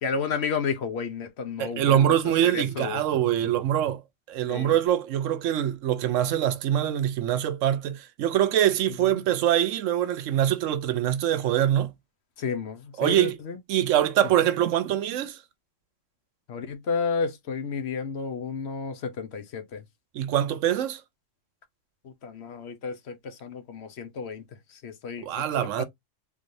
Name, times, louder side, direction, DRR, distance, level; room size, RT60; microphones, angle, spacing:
voice 1, 0.0-2.2 2.4-3.0 4.5-4.8 12.4-13.6 16.5-19.8 22.0-24.4 24.7-25.4 25.8-25.9, left 5 dB, 60° left, 0.9 m, -32 dB
voice 2, 1.6-4.0 4.3-11.9 13.0-13.4 13.7-15.4 20.1-21.0 25.2-25.8, right 11 dB, 85° right, 1.0 m, -24 dB
3.6 x 3.2 x 2.6 m
omnidirectional pair, 1.3 m